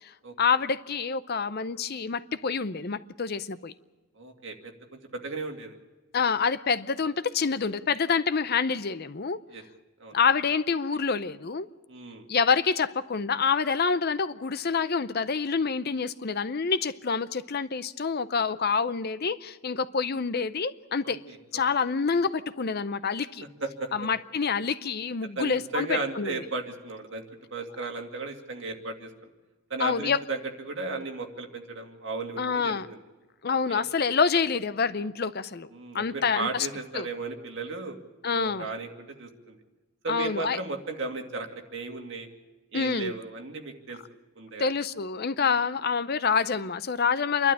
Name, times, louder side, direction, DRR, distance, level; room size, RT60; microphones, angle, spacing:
voice 1, 0.4-3.7 6.1-9.4 10.1-11.7 12.3-21.2 21.5-23.4 23.9-26.3 29.8-30.2 32.4-32.9 33.4-35.7 35.9-36.7 36.9-37.1 38.2-38.7 40.1-40.6 42.7-43.1 44.6-47.5, left 5 dB, 45° left, 0.6 m, -27 dB
voice 2, 4.2-5.8 9.5-9.6 10.0-10.2 11.9-12.2 21.0-21.6 23.6-23.9 25.4-27.2 27.5-29.1 29.7-33.0 33.7-33.8 35.7-38.0 38.3-39.6 40.0-42.3 42.7-44.0 44.4-44.7 45.3-45.5, right 3 dB, 55° right, 2.3 m, -35 dB
28.0 x 12.0 x 8.6 m
head